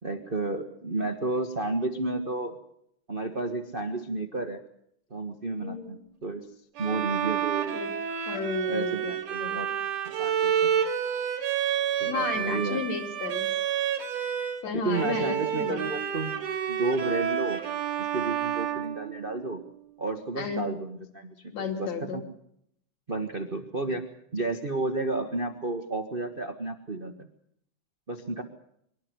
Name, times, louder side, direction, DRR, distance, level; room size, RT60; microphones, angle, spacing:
voice 1, 0.0-2.6 3.1-4.6 5.1-6.5 6.8-7.8 8.7-9.7 10.2-10.7 12.0-12.8 14.7-17.6 18.0-19.6 20.0-22.2 23.1-24.0 24.3-27.1 28.1-28.4, right 2 dB, 50° right, 5 dB, 0.6 m, -32 dB
voice 2, 5.6-5.9 7.7-7.9 8.3-9.1 9.4-9.6 12.1-13.6 14.6-15.9 20.4-20.7 21.5-22.2 23.9-24.0, left 5 dB, 60° left, 4 dB, 3.6 m, -33 dB
Bowed string instrument, 6.8-14.6 14.9-19.7, right 9 dB, 80° right, 3.9 m, -29 dB
24.5 x 12.0 x 9.6 m, 0.71 s
omnidirectional pair, 3.6 m